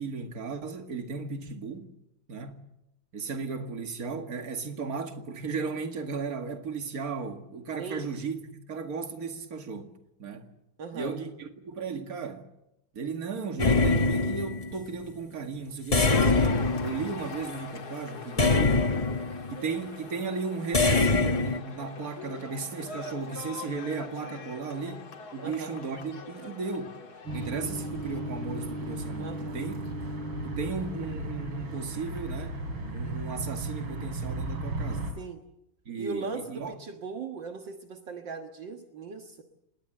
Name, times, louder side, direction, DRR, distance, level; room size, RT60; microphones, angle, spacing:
voice 1, 0.0-1.9 2.3-2.6 3.1-9.9 10.2-10.5 10.9-12.5 12.9-18.9 19.5-27.0 27.3-29.8 30.4-32.6 32.9-35.1 35.9-36.7, right 4 dB, 45° right, 2.5 m, -35 dB
voice 2, 10.8-11.1 25.4-25.7 29.2-29.6 35.2-35.4 36.0-39.4, right 4 dB, 65° right, 2.2 m, -38 dB
sound 1, 13.6-14.9 15.9-17.6 18.4-19.5 20.7-21.6, left 3 dB, 20° left, 1.1 m, -24 dB
Cheering / Applause, 16.0-29.4, left 4 dB, 50° left, 2.3 m, -44 dB
sound 2, 27.3-35.1, right 1 dB, 85° right, 4.8 m, -35 dB
26.0 x 20.5 x 8.0 m
omnidirectional pair, 2.2 m